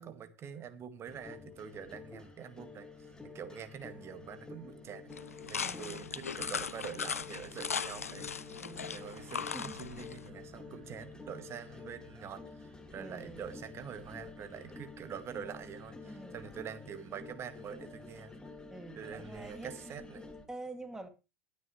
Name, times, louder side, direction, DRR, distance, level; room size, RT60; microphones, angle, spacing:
voice 1, 0.0-2.9 3.3-5.1 5.5-18.4 19.0-20.3, right 8 dB, 35° right, 1.9 m, -45 dB
sound 1, 1.0-20.5, left 3 dB, 10° left, 2.2 m, -50 dB
sound 2, 1.5-13.9, right 2 dB, 90° right, 6.6 m, -62 dB
sound 3, 5.1-10.3, left 6 dB, 85° left, 0.5 m, -39 dB
voice 2, 5.6-6.2 8.6-9.1 9.5-9.8 13.0-13.5 16.0-16.4 18.7-19.7 20.5-21.1, right 2 dB, 10° right, 2.4 m, -47 dB
19.0 x 9.6 x 3.2 m
figure-of-eight pair, 80°, 8 cm